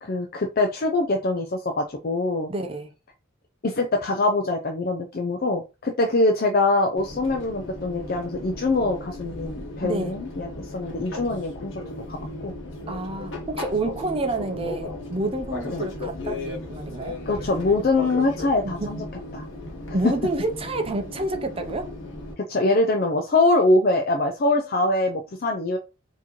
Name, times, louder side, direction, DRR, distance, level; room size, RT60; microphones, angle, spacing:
voice 1, 0.0-2.5 3.6-11.7 12.1-12.2 12.4-12.5 15.7-15.8 17.3-19.0 19.3-19.4 22.4-25.8, left 2 dB, 45° left, 0.5 m, -23 dB
voice 2, 2.5-2.9 9.8-10.1 12.9-17.2 18.8-18.9 19.9-21.9, right 2 dB, 25° right, 0.6 m, -28 dB
Fixed-wing aircraft airplane, 7.0-22.3, left 2 dB, 60° left, 1.3 m, -36 dB
4.6 x 2.9 x 3.0 m
head